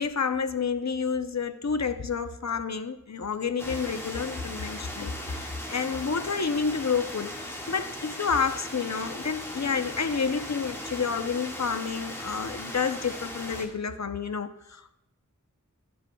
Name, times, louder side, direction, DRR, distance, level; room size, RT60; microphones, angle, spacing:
voice 1, 0.0-14.9, left 5 dB, 55° left, 10 dB, 0.6 m, -29 dB
sound 1, 3.6-13.7, left 1 dB, 10° left, 1.7 m, -38 dB
12.5 x 7.8 x 2.3 m, 0.86 s
wide cardioid pair, 55°, 32 cm